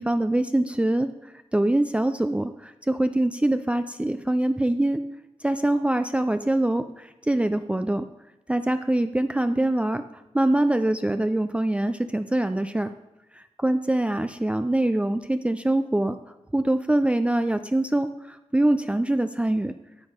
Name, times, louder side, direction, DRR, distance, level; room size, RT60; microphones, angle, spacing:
voice 1, 0.0-5.0 5.4-8.0 8.5-10.0 10.3-12.9 13.6-16.2 16.5-19.7, right 1 dB, 10° right, 9 dB, 0.4 m, -24 dB
12.5 x 5.2 x 5.1 m, 0.98 s
wide cardioid pair, 85°, 12 cm